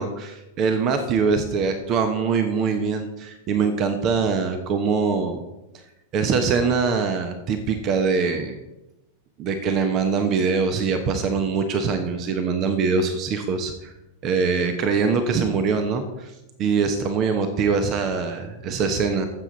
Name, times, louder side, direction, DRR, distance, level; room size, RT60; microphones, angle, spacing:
voice 1, 0.0-5.4 6.1-8.6 9.4-13.9 14.2-16.3 16.6-19.3, right 5 dB, 35° right, 8 dB, 1.1 m, -23 dB
15.0 x 7.5 x 4.1 m, 0.95 s
figure-of-eight pair, 90°, 0 cm